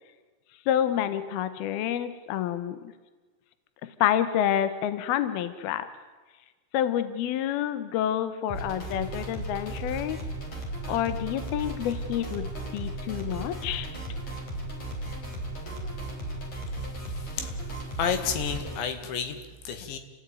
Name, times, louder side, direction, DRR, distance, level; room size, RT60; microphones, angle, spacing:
voice 1, 0.7-2.9 3.8-5.9 6.7-10.2 10.9-13.9, left 10 dB, 70° left, 12 dB, 2.9 m, -28 dB
sound 1, 8.5-18.8, right 1 dB, 40° left, 5.4 m, -35 dB
voice 2, 17.0-17.5 18.0-20.0, left 7 dB, 85° left, 8 dB, 4.3 m, -31 dB
28.5 x 16.0 x 9.3 m, 1.3 s
omnidirectional pair, 5.0 m